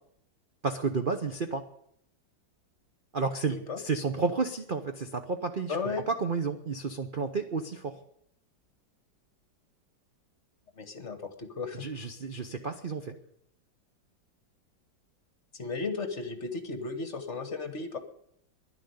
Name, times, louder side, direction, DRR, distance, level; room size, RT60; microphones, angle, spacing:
voice 1, 0.6-1.6 3.1-5.8 6.1-8.0 11.8-13.1, right 4 dB, 45° right, 7 dB, 0.6 m, -31 dB
voice 2, 3.5-3.8 5.7-6.0 10.8-11.9 15.5-18.0, left 4 dB, 40° left, 9 dB, 1.4 m, -35 dB
11.0 x 10.5 x 9.6 m, 0.71 s
omnidirectional pair, 2.1 m